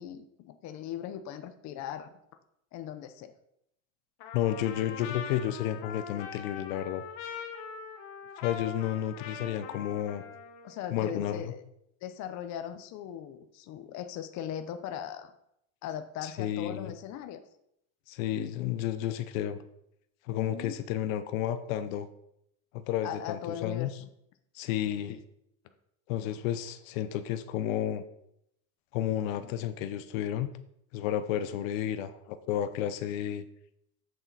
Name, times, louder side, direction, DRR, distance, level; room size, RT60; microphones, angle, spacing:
voice 1, 0.0-2.2 2.7-3.3 10.6-11.6 12.0-15.3 15.8-17.4 20.3-20.8 23.0-23.9 25.1-25.2, left 9 dB, 45° left, 8 dB, 0.8 m, -39 dB
Trumpet, 4.2-10.8, left 7 dB, 60° left, 1.4 m, -42 dB
voice 2, 4.3-7.0 8.4-10.2 10.9-11.4 16.2-16.9 18.1-19.6 20.3-22.1 22.7-23.9 24.5-25.2 26.1-28.0 28.9-30.5 30.9-33.4, left 11 dB, 90° left, 11 dB, 0.8 m, -31 dB
7.9 x 6.7 x 4.1 m, 0.76 s
cardioid pair, 145°, 39 cm